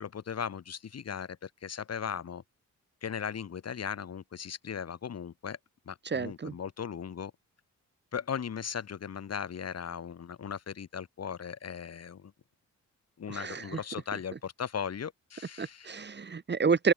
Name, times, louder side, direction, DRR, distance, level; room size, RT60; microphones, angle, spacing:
voice 1, 0.0-2.4 3.0-5.6 5.9-7.3 8.1-12.3 13.2-15.9, left 7 dB, 55° left, 5.4 m, -37 dB
voice 2, 6.0-6.5 13.3-13.8 15.6-16.9, right 5 dB, 35° right, 4.0 m, -29 dB
open air
wide cardioid pair, 145°, 31 cm